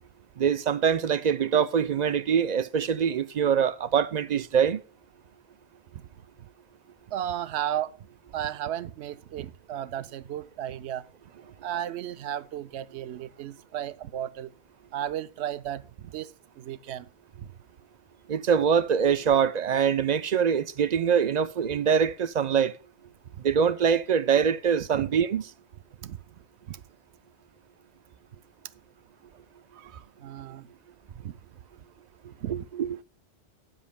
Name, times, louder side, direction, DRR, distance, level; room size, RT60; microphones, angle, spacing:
voice 1, 0.4-4.8 18.3-22.8 23.4-25.4 32.5-33.0, right 7 dB, 50° right, 0.5 m, -24 dB
voice 2, 7.1-7.9 8.3-11.1 11.6-14.5 14.9-17.1 17.4-17.5 24.9-25.1 26.0-26.2 26.7-26.8 29.7-30.7 31.2-31.3 32.2-32.7, right 11 dB, 75° right, 0.9 m, -34 dB
18.5 x 7.3 x 2.2 m
omnidirectional pair, 1.1 m